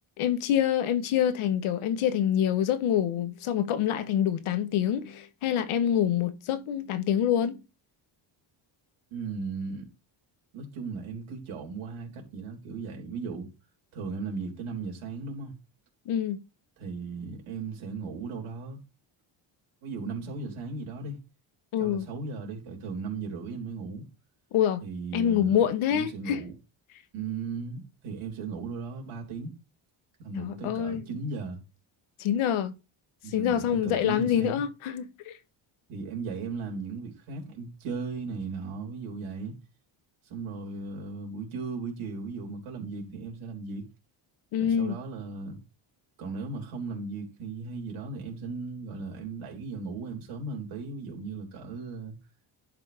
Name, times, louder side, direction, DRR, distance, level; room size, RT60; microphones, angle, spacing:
voice 1, 0.2-7.6 16.1-16.4 21.7-22.1 24.5-24.8 25.1-26.4 30.3-31.0 32.2-32.7 33.3-35.3 44.5-45.0, left 9 dB, 85° left, 1.1 m, -26 dB
voice 2, 9.1-9.8 10.5-13.5 13.9-15.5 16.8-18.8 19.8-21.2 21.8-24.0 24.8-25.6 25.9-26.5 27.1-29.5 30.2-31.6 33.2-34.6 35.9-39.6 40.3-43.8 44.6-45.6 46.2-52.1, right 4 dB, 80° right, 3.7 m, -36 dB
11.5 x 5.0 x 3.4 m
cardioid pair, 110°, 48 cm